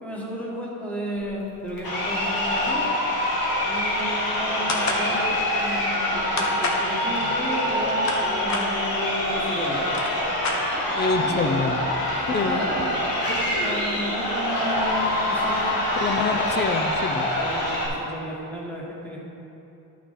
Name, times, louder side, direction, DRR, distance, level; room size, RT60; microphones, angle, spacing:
voice 1, 0.0-2.9 3.7-9.8 10.7-11.6 12.4-12.9 13.2-16.0 17.3-19.2, equal, 5° left, -4 dB, 1.6 m, -33 dB
Crowd, 1.8-17.9, left 1 dB, 80° left, 1.9 m, -25 dB
sound 1, 4.7-5.1 6.4-6.9 7.8-8.7 9.5-9.6 9.8-11.0, left 3 dB, 50° left, 1.1 m, -28 dB
voice 2, 10.9-11.8 12.3-12.6 16.0-17.3, left 4 dB, 30° left, 7 dB, 0.5 m, -26 dB
11.0 x 5.9 x 4.2 m, 2.9 s
cardioid pair, 135°, 35 cm